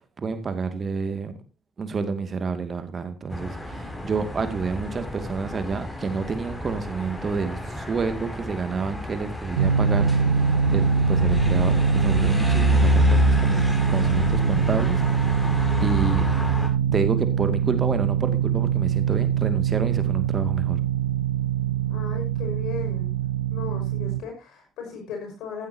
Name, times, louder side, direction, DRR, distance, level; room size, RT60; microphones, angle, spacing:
voice 1, 0.2-1.3 1.8-10.1 10.7-16.2 16.9-20.8, right 4 dB, 40° right, 10 dB, 2.1 m, -29 dB
sound 1, 3.3-16.7, left 1 dB, 10° left, 5.8 m, -28 dB
sound 2, 9.6-24.2, right 6 dB, 90° right, 0.8 m, -23 dB
voice 2, 21.9-23.2 23.5-25.7, left 6 dB, 65° left, 3 dB, 5.9 m, -36 dB
15.0 x 12.0 x 2.8 m, 0.25 s
hypercardioid pair, 50°, 0 cm